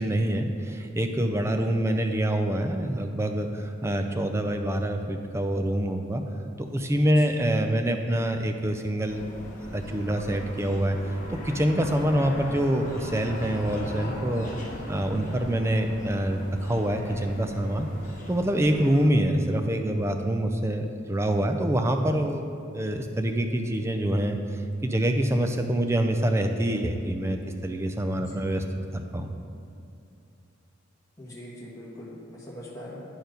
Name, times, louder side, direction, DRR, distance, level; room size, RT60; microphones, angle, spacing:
voice 1, 0.0-6.2 6.6-9.2 9.7-11.2 11.4-14.5 14.9-17.9 18.3-22.4 22.7-28.6 28.9-29.3, right 1 dB, 15° right, 5 dB, 0.4 m, -26 dB
sound 1, 9.1-19.1, equal, 40° left, 1.2 m, -39 dB
voice 2, 31.2-33.0, left 1 dB, 15° left, -6 dB, 1.4 m, -42 dB
9.3 x 4.5 x 5.1 m, 2.5 s
head